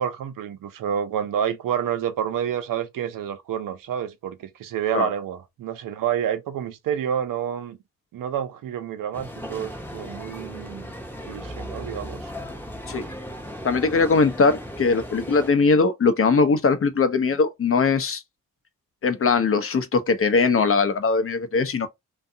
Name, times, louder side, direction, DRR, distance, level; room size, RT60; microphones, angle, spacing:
voice 1, 0.0-7.8 8.1-10.9 11.3-12.3, right 9 dB, 65° right, 0.6 m, -28 dB
sound 1, 9.1-15.5, equal, 5° left, 0.7 m, -37 dB
voice 2, 13.6-18.2 19.0-21.9, left 4 dB, 40° left, 0.6 m, -20 dB
2.6 x 2.3 x 2.6 m
supercardioid pair, 45°, 35 cm